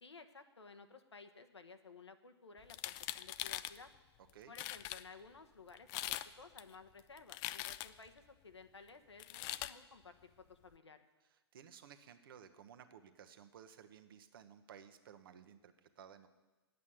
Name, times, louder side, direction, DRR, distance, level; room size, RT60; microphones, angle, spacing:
voice 1, 0.0-3.9 4.5-11.0, left 4 dB, 85° left, 8 dB, 1.1 m, -56 dB
sound 1, 2.6-3.8 4.3-4.4 4.5-5.0 5.8-6.3 6.6-8.1 9.2-9.7, left 15 dB, 30° left, 0.4 m, -42 dB
voice 2, 11.3-16.3, right 8 dB, 55° right, 9 dB, 1.1 m, -57 dB
9.7 x 8.3 x 9.2 m, 1.2 s
figure-of-eight pair, 120°, 14 cm